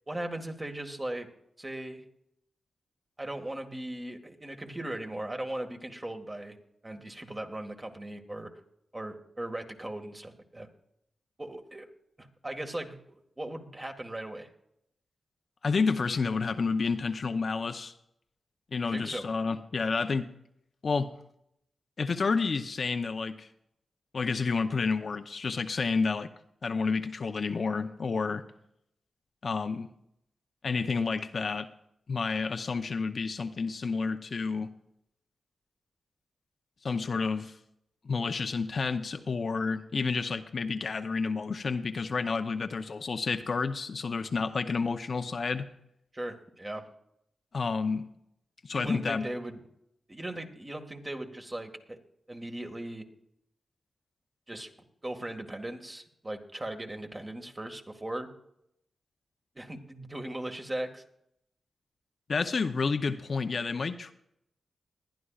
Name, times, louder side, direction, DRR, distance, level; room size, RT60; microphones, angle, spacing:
voice 1, 0.1-1.3 1.6-2.0 3.2-6.6 6.8-8.5 8.9-10.7 11.4-11.9 12.2-14.5 18.8-19.3 46.1-46.9 48.7-49.6 50.1-52.0 52.3-53.0 54.5-54.7 55.0-58.3 59.6-61.0, right 1 dB, 25° right, 4 dB, 1.8 m, -38 dB
voice 2, 15.6-17.9 18.7-20.3 20.8-21.1 22.0-23.5 24.1-26.3 26.6-28.4 29.4-29.9 30.6-31.7 32.1-34.7 36.8-37.6 38.0-45.7 47.5-48.0 48.6-49.3 62.3-64.1, left 4 dB, 60° left, 8 dB, 0.7 m, -30 dB
21.0 x 11.5 x 2.4 m, 0.76 s
cardioid pair, 65°, 0 cm